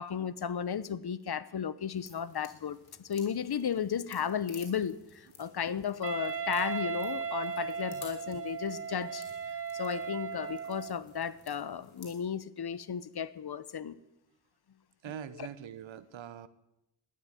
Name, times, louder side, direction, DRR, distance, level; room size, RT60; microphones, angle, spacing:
voice 1, 0.0-2.8 3.0-9.2 9.7-14.0, left 7 dB, 55° left, 17 dB, 1.0 m, -34 dB
sound 1, 1.9-12.1, left 5 dB, 85° left, 3.8 m, -56 dB
Wind instrument woodwind instrument, 6.0-11.0, right 6 dB, 30° right, 0.7 m, -37 dB
voice 2, 15.0-16.5, right 10 dB, 80° right, 16 dB, 1.1 m, -43 dB
12.5 x 11.0 x 8.9 m, 0.88 s
cardioid pair, 50°, 45 cm